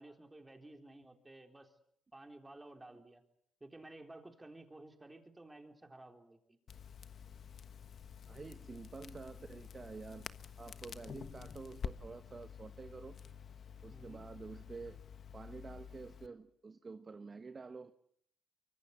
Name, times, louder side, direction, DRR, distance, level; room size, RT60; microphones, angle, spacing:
voice 1, 0.0-1.7 2.1-3.2 3.6-6.6 10.1-10.3 10.9-11.2 13.2-13.3 13.9-14.2, right 2 dB, 15° right, 3.9 m, -54 dB
Crackle, 6.7-16.3, left 7 dB, 55° left, 1.3 m, -49 dB
voice 2, 8.3-10.3 10.6-13.2 13.8-15.0 15.3-17.9, right 4 dB, 30° right, 1.1 m, -49 dB
24.5 x 24.0 x 8.3 m
cardioid pair, 90°, 0 cm